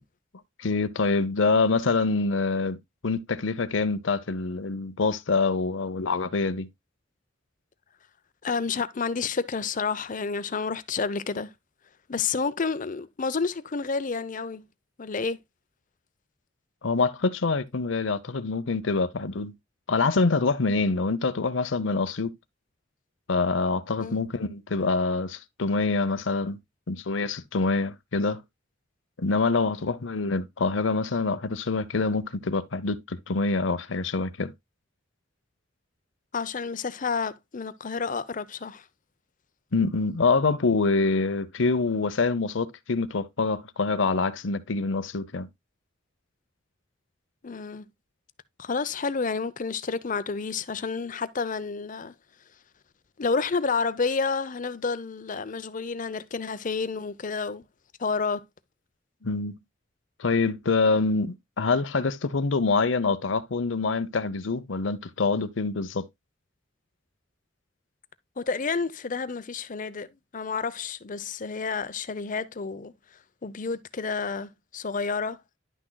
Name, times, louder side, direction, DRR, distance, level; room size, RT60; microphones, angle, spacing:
voice 1, 0.6-2.8 3.0-6.7 16.8-19.5 19.9-22.3 23.3-26.6 26.9-28.4 29.2-34.5 39.7-45.5 59.2-59.6 60.2-66.0, left 3 dB, 80° left, 0.8 m, -25 dB
voice 2, 8.4-11.5 12.1-14.6 15.0-15.4 24.0-24.2 36.3-38.8 47.4-47.8 48.6-52.1 53.2-57.6 58.0-58.4 68.4-72.9 73.4-75.4, left 4 dB, 45° left, 0.7 m, -30 dB
11.0 x 6.3 x 2.2 m
head